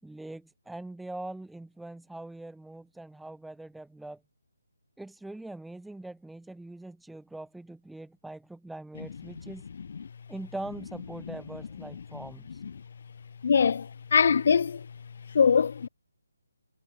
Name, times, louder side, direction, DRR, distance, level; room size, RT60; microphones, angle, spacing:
voice 1, 0.0-4.2 5.0-9.7 10.3-12.5, right 2 dB, ahead, 7.5 m, -42 dB
voice 2, 13.4-14.9 15.3-15.9, left 6 dB, 50° left, 2.5 m, -23 dB
figure-of-eight pair, 160°, 0 cm